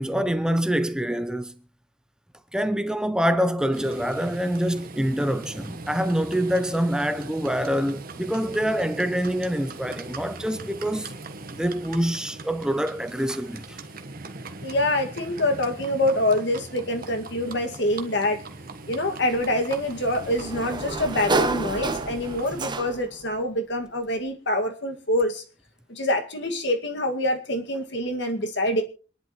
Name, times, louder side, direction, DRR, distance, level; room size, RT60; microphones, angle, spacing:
voice 1, 0.0-1.5 2.5-11.1 11.5-13.8, equal, 5° right, 0.6 m, -25 dB
Livestock farm animals working animals, 3.7-22.7, right 3 dB, 50° right, 1.3 m, -40 dB
voice 2, 14.6-18.4 18.9-25.4 25.9-28.8, left 1 dB, 60° left, 2.1 m, -25 dB
Sliding door, 19.3-23.2, right 3 dB, 25° right, 0.9 m, -30 dB
26.0 x 10.5 x 3.1 m
head